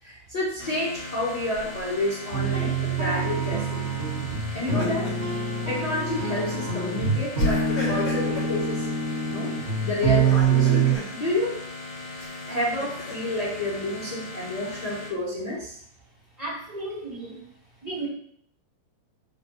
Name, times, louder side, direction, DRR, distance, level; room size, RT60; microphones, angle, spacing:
voice 1, 0.0-3.8 4.5-5.2 5.7-8.9 9.3-9.5 9.8-11.6 12.5-15.8, left 1 dB, 85° left, -6 dB, 0.3 m, -30 dB
sound 1, 0.6-15.1, left 2 dB, 60° left, 3.1 m, -39 dB
Laughter, 1.5-2.1 4.4-5.3 5.7-5.9 7.4-8.5 10.1-11.1 12.2-13.4, left 2 dB, 45° left, 2.6 m, -34 dB
sound 2, 2.3-10.9, right 5 dB, 80° right, 0.6 m, -25 dB
voice 2, 16.4-17.4 17.8-18.1, right 2 dB, 10° right, -8 dB, 2.4 m, -34 dB
5.1 x 3.7 x 5.6 m, 0.64 s
omnidirectional pair, 3.4 m